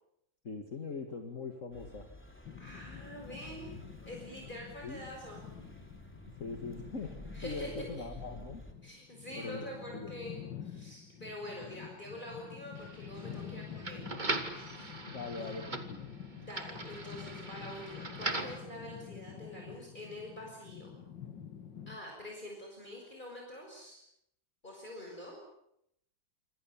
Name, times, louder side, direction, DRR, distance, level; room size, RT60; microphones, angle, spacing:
voice 1, 0.4-2.1 4.8-5.0 6.4-8.6 9.4-10.1 15.1-16.1, left 4 dB, 40° left, 5 dB, 2.3 m, -41 dB
sound 1, 1.7-8.7, equal, 5° left, 3.7 m, -51 dB
sound 2, 2.4-22.0, left 8 dB, 70° left, 2.6 m, -48 dB
voice 2, 2.6-5.4 7.3-8.0 8.8-14.0 14.5-15.0 15.4-15.5 16.4-21.0 21.9-24.0 24.6-25.5, left 1 dB, 25° left, -1 dB, 6.3 m, -46 dB
sound 3, 12.8-18.6, right 2 dB, 25° right, 2.3 m, -40 dB
26.5 x 26.5 x 7.4 m, 0.77 s
omnidirectional pair, 2.1 m